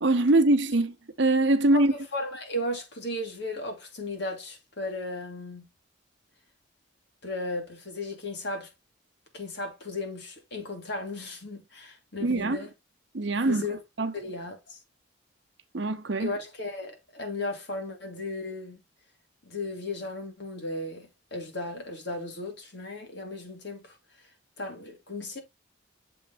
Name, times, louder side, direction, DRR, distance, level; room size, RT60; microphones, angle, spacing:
voice 1, 0.0-1.9 12.2-12.6 13.1-14.1 15.7-16.3, right 2 dB, 60° right, 0.8 m, -23 dB
voice 2, 2.1-5.7 7.2-8.7 9.3-12.7 13.3-13.8 14.1-14.8 16.2-18.8 19.5-24.0 24.6-25.4, left 2 dB, 60° left, 2.3 m, -35 dB
7.1 x 3.9 x 3.9 m
head